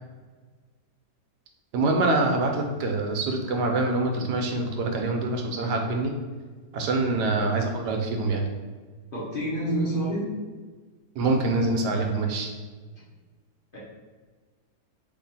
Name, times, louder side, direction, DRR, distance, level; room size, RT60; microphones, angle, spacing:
voice 1, 1.7-6.1 6.7-8.5 11.2-12.5, right 2 dB, 85° right, 2 dB, 1.2 m, -25 dB
voice 2, 9.1-10.3 12.9-13.0 13.7-13.8, right 1 dB, 45° left, -8 dB, 0.8 m, -28 dB
3.1 x 2.9 x 4.0 m, 1.4 s
omnidirectional pair, 1.8 m